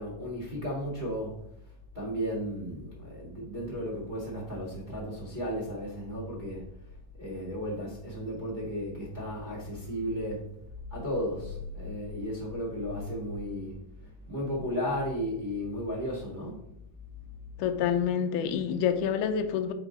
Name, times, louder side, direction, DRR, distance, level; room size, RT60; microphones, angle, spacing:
voice 1, 0.0-1.4 1.9-6.7 7.2-10.5 10.9-13.8 14.3-16.6, equal, 25° right, -5 dB, 1.0 m, -34 dB
voice 2, 17.6-19.7, left 8 dB, 75° left, 7 dB, 2.1 m, -27 dB
7.9 x 5.1 x 4.0 m, 0.75 s
omnidirectional pair, 4.0 m